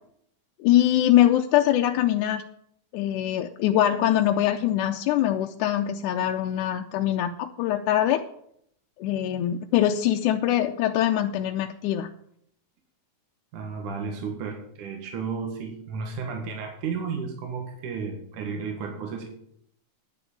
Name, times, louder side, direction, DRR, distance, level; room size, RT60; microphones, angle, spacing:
voice 1, 0.6-2.4 2.9-8.2 9.0-12.1, left 12 dB, 80° left, 4 dB, 2.1 m, -23 dB
voice 2, 13.5-19.3, right 5 dB, 75° right, 2 dB, 3.2 m, -33 dB
11.0 x 7.0 x 8.6 m, 0.70 s
omnidirectional pair, 3.6 m